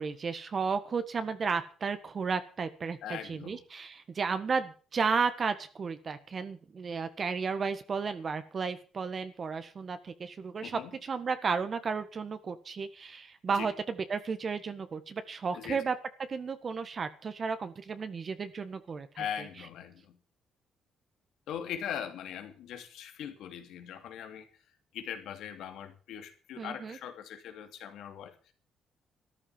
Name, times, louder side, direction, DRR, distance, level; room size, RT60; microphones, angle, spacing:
voice 1, 0.0-15.9 16.3-19.2 26.6-27.0, right 5 dB, 45° right, 10 dB, 1.6 m, -33 dB
voice 2, 3.0-3.6 10.6-10.9 13.5-13.7 15.5-15.8 19.1-20.2 21.5-24.5 24.9-28.5, left 9 dB, 85° left, 6 dB, 2.8 m, -40 dB
13.5 x 11.0 x 7.4 m, 0.39 s
cardioid pair, 90°, 0 cm